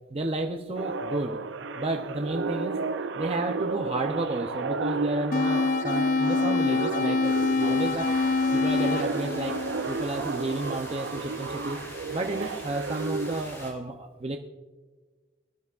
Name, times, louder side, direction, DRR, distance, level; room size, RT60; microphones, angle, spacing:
voice 1, 0.1-1.5 1.7-8.1 8.5-14.4, right 2 dB, 30° right, 3 dB, 0.6 m, -32 dB
sound 1, 0.8-13.4, right 4 dB, 90° right, 0.5 m, -32 dB
sound 2, 5.3-10.4, left 3 dB, 45° left, 0.4 m, -26 dB
sound 3, 7.2-13.7, left 1 dB, 15° left, 2.4 m, -45 dB
20.0 x 12.0 x 2.4 m, 1.4 s
head